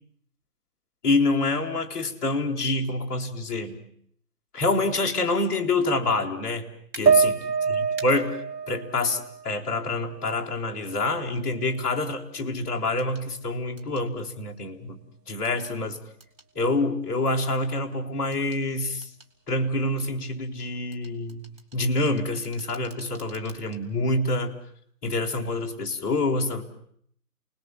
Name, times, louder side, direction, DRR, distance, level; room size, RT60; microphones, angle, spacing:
voice 1, 1.0-3.8 4.5-6.7 6.9-8.3 8.7-15.0 15.3-16.0 16.5-19.1 19.5-21.5 21.7-24.5 25.0-26.6, left 2 dB, 10° left, -5 dB, 1.4 m, -27 dB
sound 1, 6.9-7.0 8.0-8.1 10.1-10.2 13.0-13.3 13.8-14.1 15.4-15.8 16.2-16.5 18.3-18.6 19.0-19.3 20.9-23.8 24.2-24.4, right 4 dB, 35° right, 2.1 m, -48 dB
sound 2, 7.1-10.5 10.9-11.9, right 6 dB, 85° right, 1.1 m, -26 dB
29.0 x 20.0 x 7.5 m, 0.66 s
hypercardioid pair, 165°, 48 cm